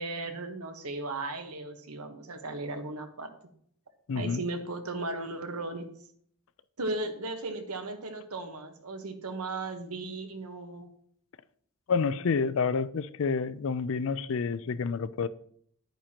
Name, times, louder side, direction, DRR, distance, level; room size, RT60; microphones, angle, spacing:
voice 1, 0.0-3.3 4.1-5.9 6.8-10.9, right 2 dB, 75° right, 1.3 m, -36 dB
voice 2, 4.1-4.4 11.9-15.3, left 5 dB, 60° left, 0.4 m, -29 dB
10.5 x 9.1 x 2.9 m
head